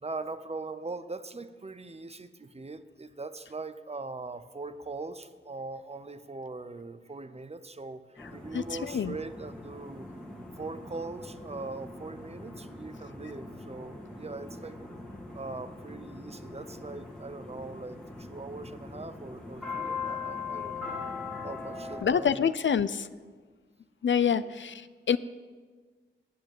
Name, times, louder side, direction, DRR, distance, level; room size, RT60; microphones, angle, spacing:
voice 1, 0.0-10.1 10.6-14.9 15.3-21.0 21.4-22.5 24.1-24.5, right 3 dB, 30° right, 11 dB, 0.7 m, -41 dB
sound 1, 8.2-22.0, left 4 dB, 5° left, 1.9 m, -41 dB
voice 2, 8.5-9.2 22.0-23.1 24.0-25.2, left 7 dB, 65° left, 15 dB, 0.5 m, -27 dB
10.5 x 8.4 x 8.9 m, 1.5 s
wide cardioid pair, 105°, 21 cm